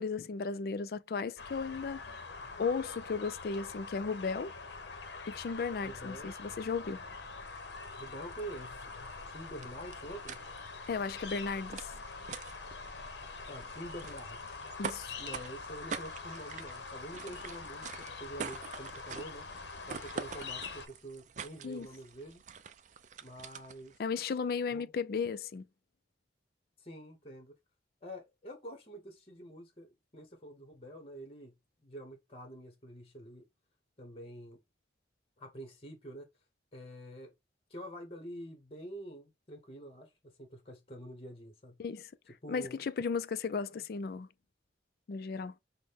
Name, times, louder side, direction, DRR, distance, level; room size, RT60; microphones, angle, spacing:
voice 1, 0.0-2.0 2.6-4.5 5.3-7.0 10.9-11.9 14.8-15.2 21.6-21.9 24.0-25.7 41.8-42.1 42.5-44.3 45.1-45.6, left 5 dB, 55° left, 0.4 m, -35 dB
sound 1, 1.4-20.9, left 4 dB, 75° left, 0.8 m, -45 dB
voice 2, 5.8-6.3 7.9-8.8 9.2-10.4 13.5-14.6 15.2-19.4 19.9-22.4 23.2-23.9 24.7-24.9 26.8-27.5 28.0-29.9 30.1-31.6 31.8-33.5 34.0-34.6 35.4-36.3 36.7-37.3 37.7-41.8 42.4-42.8, right 1 dB, 30° left, 1.0 m, -47 dB
sound 2, 7.5-24.0, right 6 dB, 40° right, 0.4 m, -47 dB
6.1 x 2.2 x 3.4 m
head